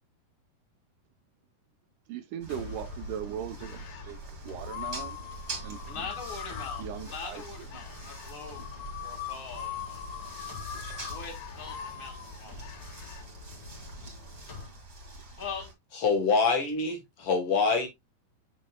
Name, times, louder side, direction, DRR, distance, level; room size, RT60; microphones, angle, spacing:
voice 1, 2.1-3.8 4.1-4.2 4.5-5.2 5.6-6.0 6.8-7.4, right 10 dB, 80° right, 1.8 m, -38 dB
sound 1, 2.4-15.7, right 2 dB, 25° right, 2.0 m, -45 dB
Trailer-esque track, 2.5-14.7, left 3 dB, 40° left, 1.8 m, -46 dB
sound 2, 3.5-4.1 4.6-13.2, left 10 dB, 75° left, 2.5 m, -42 dB
voice 2, 5.8-10.2 11.1-12.6 15.4-15.7, left 5 dB, 25° left, 2.0 m, -42 dB
voice 3, 16.0-17.9, left 4 dB, 60° left, 1.6 m, -25 dB
7.4 x 6.0 x 2.2 m
omnidirectional pair, 4.3 m